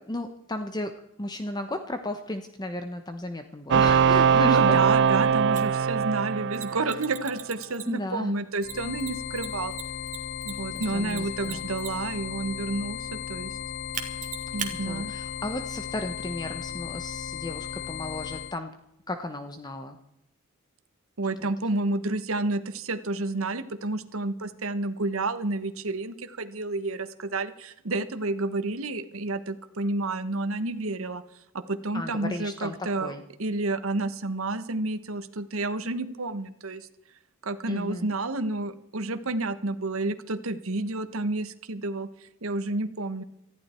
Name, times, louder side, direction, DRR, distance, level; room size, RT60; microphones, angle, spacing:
voice 1, 0.0-4.8 7.9-8.3 10.7-11.6 14.7-18.7 19.1-20.0 21.4-21.5 31.9-33.2 37.7-38.1, left 1 dB, 20° left, 7 dB, 0.9 m, -34 dB
sound 1, 3.7-7.4, right 6 dB, 60° right, 0.4 m, -22 dB
voice 2, 4.4-9.7 10.4-13.6 14.5-15.1 21.2-31.2 31.5-33.1 33.4-36.9 37.4-43.2, right 2 dB, 85° right, 11 dB, 1.2 m, -30 dB
Mechanisms, 5.6-5.7 6.5-8.1 8.6-12.2 13.9-14.7, right 8 dB, 40° right, 2.0 m, -37 dB
sound 2, 8.6-18.6, left 9 dB, 55° left, 0.5 m, -36 dB
19.0 x 14.0 x 4.4 m, 0.82 s
head